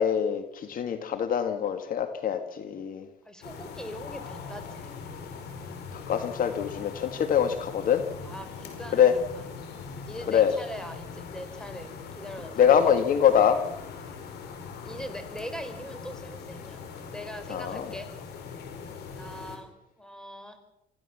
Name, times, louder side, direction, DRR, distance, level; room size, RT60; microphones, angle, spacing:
voice 1, 0.0-3.0 5.9-8.0 8.9-9.1 10.3-10.5 12.6-13.6 17.5-17.9, left 8 dB, 55° left, 8 dB, 1.9 m, -24 dB
voice 2, 3.2-5.3 8.2-9.5 10.1-12.8 14.8-16.8 17.1-18.1 19.1-19.7 20.0-20.6, equal, 5° left, 8 dB, 4.8 m, -41 dB
sound 1, 3.4-19.6, left 5 dB, 75° left, 5.1 m, -41 dB
26.5 x 15.5 x 7.4 m, 0.85 s
cardioid pair, 110°, 17 cm